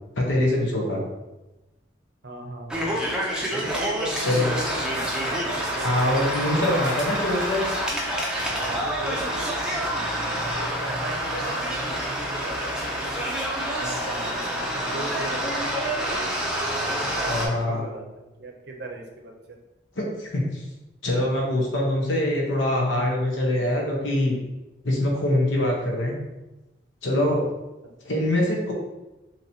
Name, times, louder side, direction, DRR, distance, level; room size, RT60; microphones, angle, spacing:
voice 1, 0.2-1.0 4.2-4.5 5.8-7.7 17.3-17.9 20.0-20.6 21.0-24.4 24.8-26.1 27.0-27.5 28.0-28.7, left 1 dB, 85° left, -1 dB, 0.9 m, -24 dB
voice 2, 2.2-2.9 3.5-7.0 8.5-13.2 13.7-16.1 16.8-19.6, right 2 dB, 60° right, 2 dB, 0.6 m, -38 dB
sound 1, 2.7-17.5, right 1 dB, 5° right, 0.5 m, -27 dB
4.2 x 2.9 x 2.7 m, 1.0 s
head